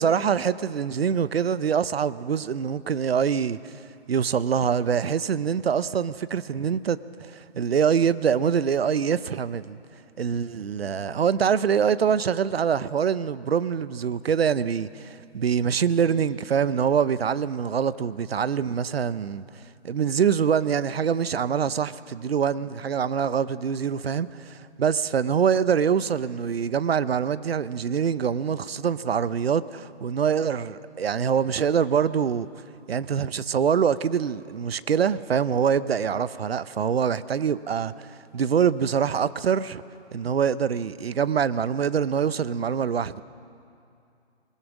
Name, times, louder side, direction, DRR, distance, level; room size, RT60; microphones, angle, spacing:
voice 1, 0.0-3.8 4.1-9.8 10.2-19.4 19.8-32.5 32.9-38.1 38.3-39.8 40.1-43.2, right 7 dB, 65° right, 0.8 m, -24 dB
21.5 x 20.5 x 6.1 m
figure-of-eight pair, 145°, 32 cm